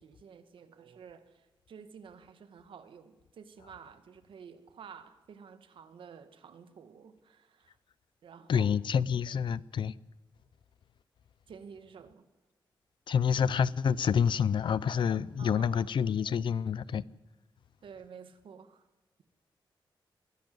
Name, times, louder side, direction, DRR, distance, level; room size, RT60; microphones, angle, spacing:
voice 1, 0.0-7.8 8.2-8.7 11.5-12.3 15.4-16.0 16.2-16.4 17.8-18.9, right 6 dB, 90° right, 1.9 m, -51 dB
voice 2, 8.5-9.9 13.1-17.0, left 7 dB, 70° left, 0.7 m, -28 dB
21.5 x 16.5 x 7.9 m
wide cardioid pair, 125°, 8 cm